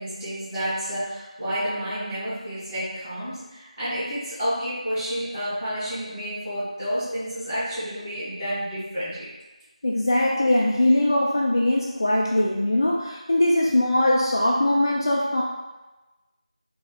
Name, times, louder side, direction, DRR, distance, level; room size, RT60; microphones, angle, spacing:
voice 1, 0.0-9.3, equal, 10° right, -17 dB, 1.2 m, -30 dB
voice 2, 9.8-15.4, left 1 dB, 35° left, -3 dB, 0.3 m, -21 dB
3.9 x 2.9 x 3.6 m, 1.1 s
figure-of-eight pair, 175°, 4 cm